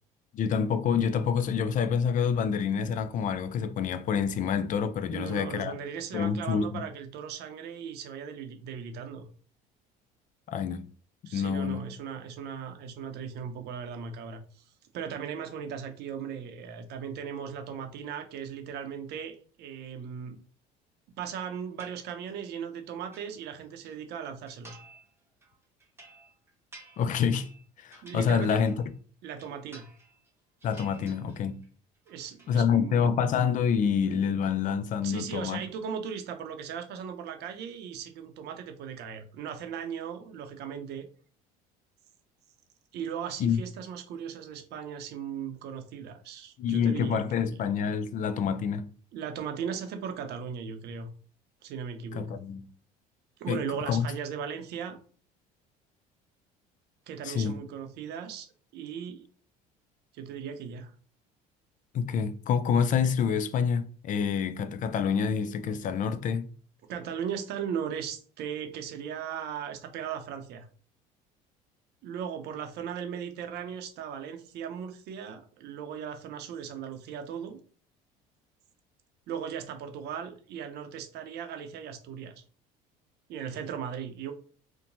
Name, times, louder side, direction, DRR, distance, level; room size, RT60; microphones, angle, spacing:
voice 1, 0.3-5.8 6.1-6.8 10.5-10.9 11.3-11.9 27.0-27.5 27.8-28.7 30.6-31.6 32.5-35.6 43.4-43.6 46.6-48.9 52.2-52.6 53.5-54.1 57.2-57.6 61.9-66.5, left 7 dB, 45° left, 0.4 m, -27 dB
voice 2, 5.1-9.2 11.3-14.6 14.9-20.4 21.2-24.8 28.0-28.6 29.2-29.9 32.1-33.2 35.0-41.0 42.9-47.5 49.1-51.1 51.6-52.4 53.4-55.0 57.1-58.5 58.7-59.2 60.1-60.9 66.9-70.7 72.0-77.6 79.3-82.4 83.3-84.3, right 7 dB, 60° right, 0.6 m, -37 dB
sound 1, 21.8-22.5 22.9-23.9 24.5-25.1 25.4-28.9 29.2-30.3 30.6-31.7 31.9-32.6, right 2 dB, 15° right, 0.9 m, -54 dB
2.8 x 2.1 x 2.6 m
supercardioid pair, 80°, 19 cm